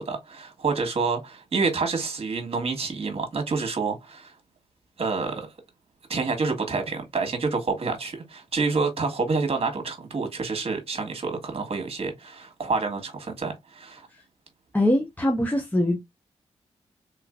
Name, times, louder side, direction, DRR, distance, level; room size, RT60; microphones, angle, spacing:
voice 1, 0.0-4.3 5.0-5.5 6.1-14.1, right 4 dB, 55° right, 1.5 m, -28 dB
voice 2, 14.7-16.0, left 1 dB, 15° left, 0.9 m, -22 dB
3.5 x 3.1 x 2.4 m
supercardioid pair, 45°, 12 cm